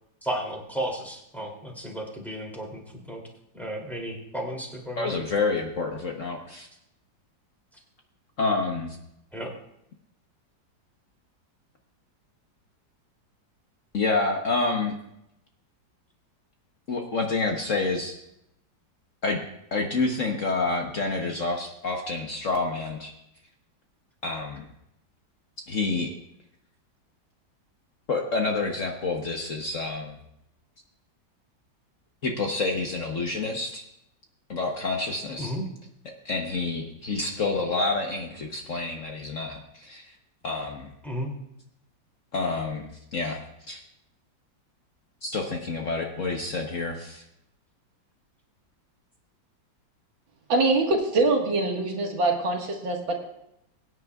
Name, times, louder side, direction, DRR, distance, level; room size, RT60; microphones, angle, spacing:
voice 1, 0.2-2.8 3.1-3.2 3.5-5.2 9.3-9.5 35.4-35.7 41.0-41.4, equal, ahead, -2 dB, 2.7 m, -33 dB
voice 2, 5.0-6.7 8.4-8.9 13.9-14.9 16.9-18.1 19.2-19.4 19.7-23.1 24.2-24.6 25.7-26.1 28.1-30.1 32.2-33.8 34.5-35.5 36.3-39.6 39.9-40.0 40.4-40.8 42.3-42.8 43.1-43.4 43.7-43.8 45.2-47.2, left 3 dB, 50° left, 2 dB, 1.2 m, -28 dB
voice 3, 50.5-53.1, right 2 dB, 90° right, 1 dB, 2.4 m, -24 dB
22.5 x 9.5 x 2.4 m, 0.81 s
omnidirectional pair, 2.0 m